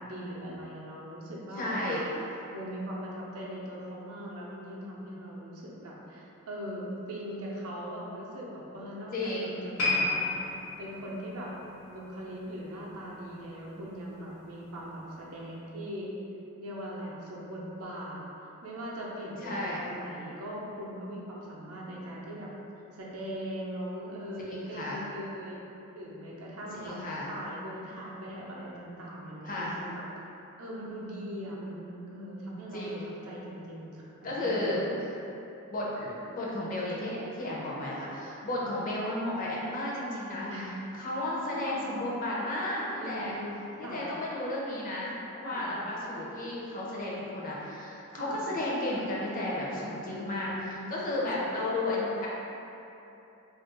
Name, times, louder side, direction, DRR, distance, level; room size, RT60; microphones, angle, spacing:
voice 1, 0.0-2.1 2.5-10.4 10.8-11.5 11.9-16.1 16.6-18.2 18.6-22.5 22.9-25.6 25.9-27.0 27.3-30.0 30.6-32.8 33.2-34.7 37.6-37.8 38.5-38.7 40.5-40.8 41.6-41.8 43.0-44.0 45.4-45.7 48.1-48.4 49.9-50.9 51.3-51.4, equal, 75° right, -4 dB, 0.6 m, -40 dB
voice 2, 1.5-2.0 9.1-9.6 19.4-19.8 24.5-25.0 26.7-27.3 29.4-29.8 32.7-33.1 34.2-35.1 35.7-40.5 40.9-43.4 43.8-50.5 50.9-52.3, left 1 dB, 40° left, -5 dB, 0.5 m, -33 dB
sound 1, 9.8-13.1 13.4-13.6 14.3-14.4, left 2 dB, 85° left, 0.8 m, -32 dB
2.5 x 2.2 x 3.7 m, 2.9 s
head